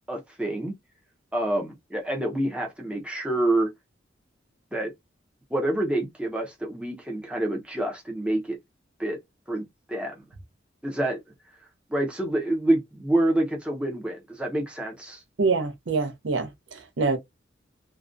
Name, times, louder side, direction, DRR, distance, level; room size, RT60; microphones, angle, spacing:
voice 1, 0.1-0.7 1.3-3.7 4.7-4.9 5.5-8.6 9.0-9.2 9.5-10.2 10.8-11.2 11.9-15.2, right 1 dB, 5° right, 0.5 m, -27 dB
voice 2, 15.4-17.2, right 4 dB, 70° right, 0.6 m, -26 dB
2.3 x 2.1 x 2.4 m
head